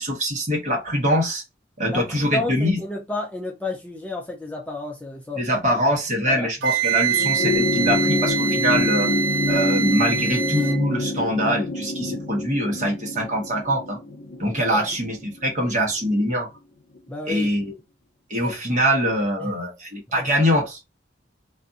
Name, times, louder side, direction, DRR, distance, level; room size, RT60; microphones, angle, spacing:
voice 1, 0.0-1.4 1.8-2.8 5.4-9.1 9.5-14.0 14.4-16.5 17.3-17.7 18.3-20.8, equal, 45° right, 1.1 m, -23 dB
voice 2, 1.9-5.4 6.2-6.5 14.7-14.9 17.1-17.5 18.4-18.5 19.4-19.5 20.2-20.3, left 2 dB, 10° left, 0.4 m, -31 dB
Wind instrument woodwind instrument, 6.6-10.8, right 7 dB, 80° right, 0.4 m, -25 dB
sound 1, 7.1-15.8 17.0-17.1, left 2 dB, 55° left, 0.6 m, -26 dB
2.5 x 2.4 x 2.7 m
head